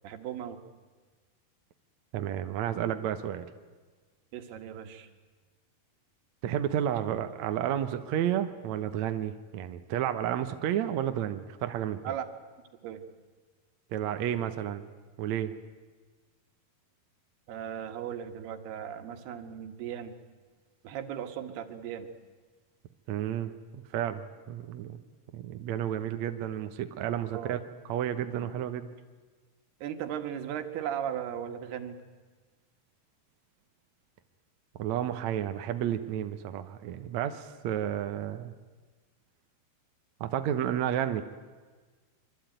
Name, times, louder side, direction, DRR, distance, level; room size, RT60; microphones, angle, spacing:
voice 1, 0.0-0.6 4.3-5.1 12.1-12.3 12.8-13.0 17.5-20.2 20.8-22.1 27.3-27.6 29.8-32.0, right 9 dB, 85° right, 7 dB, 3.6 m, -37 dB
voice 2, 2.1-3.5 6.4-12.0 13.9-14.9 15.2-15.5 23.1-25.0 25.3-27.6 27.9-28.9 34.8-38.5 40.2-41.2, right 10 dB, 70° right, 8 dB, 1.8 m, -31 dB
25.5 x 24.0 x 9.2 m, 1.4 s
omnidirectional pair, 4.5 m